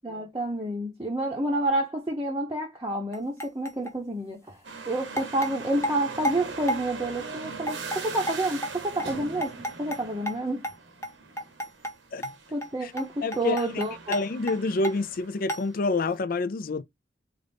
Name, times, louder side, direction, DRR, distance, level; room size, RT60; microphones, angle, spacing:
voice 1, 0.0-4.6 4.9-10.7 12.5-14.2, right 1 dB, 20° right, 0.7 m, -29 dB
sound 1, 3.1-3.9 4.5-4.6 5.2-6.8 7.2-7.3 7.7-8.0 8.3-10.0 10.3-10.4 10.6-10.7 11.0-11.1 11.4-11.9 12.2-12.4 12.6-12.7 13.0-13.1 13.3-14.6 14.8-14.9 15.5-15.6, equal, 15° left, 0.7 m, -31 dB
sound 2, 4.6-16.2, right 4 dB, 90° right, 1.1 m, -41 dB
voice 2, 13.2-13.8 14.1-16.8, left 3 dB, 50° left, 0.5 m, -28 dB
3.9 x 2.5 x 3.4 m
head